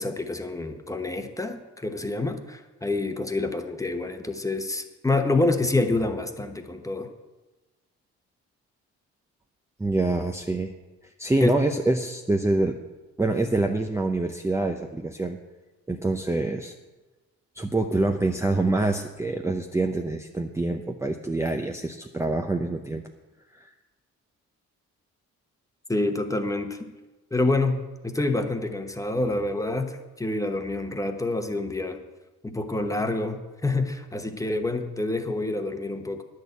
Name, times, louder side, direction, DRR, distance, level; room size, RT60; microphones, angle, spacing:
voice 1, 0.0-7.1 11.4-11.6 25.9-26.9 27.3-32.0 32.4-36.2, left 2 dB, 10° left, 6 dB, 1.1 m, -27 dB
voice 2, 9.8-10.7 11.2-12.8 13.2-15.4 15.9-16.7 17.6-23.0 23.6-23.7, right 2 dB, 10° right, 3 dB, 0.7 m, -26 dB
10.5 x 6.6 x 8.2 m, 1.2 s
cardioid pair, 90°, 30 cm